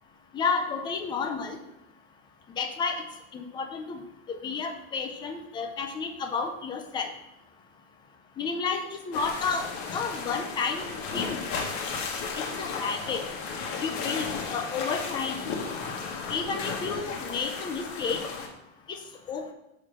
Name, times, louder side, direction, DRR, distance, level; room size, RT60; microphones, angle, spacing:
voice 1, 0.3-1.6 2.6-3.0 3.3-4.0 4.3-7.1 8.4-11.4 12.4-13.2 13.8-15.4 16.3-18.2 18.9-19.0 19.3-19.5, left 5 dB, 10° left, 5 dB, 0.5 m, -31 dB
sound 1, 9.1-18.5, left 5 dB, 55° left, 1.7 m, -34 dB
8.7 x 4.4 x 6.1 m, 0.88 s
supercardioid pair, 175°, 38 cm